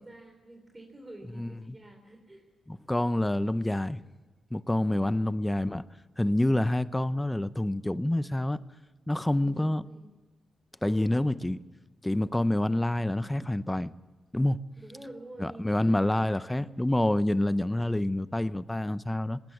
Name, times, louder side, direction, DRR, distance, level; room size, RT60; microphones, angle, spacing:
voice 1, 0.0-2.5 5.1-5.4 9.4-10.1 10.8-11.4 14.8-16.8, right 1 dB, 20° right, 3.2 m, -48 dB
voice 2, 1.4-1.7 2.7-4.0 4.5-5.9 6.2-8.6 9.1-9.8 10.8-11.6 12.0-13.9 14.3-14.6 15.4-19.4, left 1 dB, 10° left, 0.7 m, -27 dB
19.0 x 19.0 x 7.1 m
cardioid pair, 100°, 0 cm